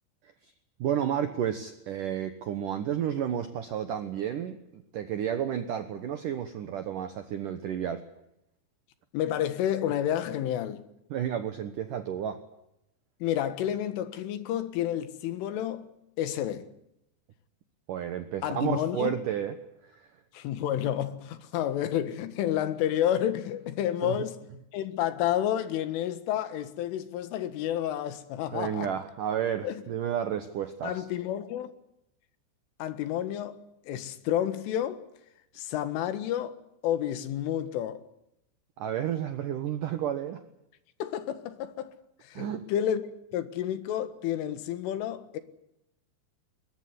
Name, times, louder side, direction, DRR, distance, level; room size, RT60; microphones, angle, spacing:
voice 1, 0.8-8.0 11.1-12.4 17.9-19.5 24.0-24.2 28.5-31.0 38.8-40.4 42.4-42.6, right 9 dB, 70° right, 2.1 m, -31 dB
voice 2, 9.1-10.8 13.2-15.9 16.2-16.7 18.4-19.2 20.3-24.4 24.7-28.9 29.6-29.8 30.8-31.7 32.8-33.6 33.9-35.0 35.6-36.6 36.8-38.0 41.0-41.9 42.2-43.0 43.3-45.4, left 11 dB, 85° left, 4.2 m, -30 dB
21.5 x 21.5 x 9.6 m
omnidirectional pair, 5.5 m